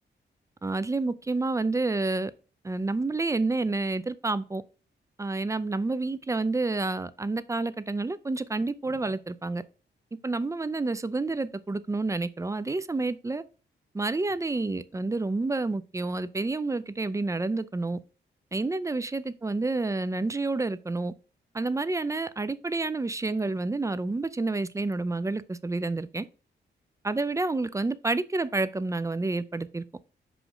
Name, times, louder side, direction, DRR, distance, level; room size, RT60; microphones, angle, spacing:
voice 1, 0.6-2.3 2.6-4.6 5.2-9.6 10.2-13.4 13.9-18.0 18.5-21.1 21.5-26.3 27.0-29.8, right 3 dB, 15° right, 0.4 m, -29 dB
6.0 x 5.0 x 3.8 m
wide cardioid pair, 110°, 19 cm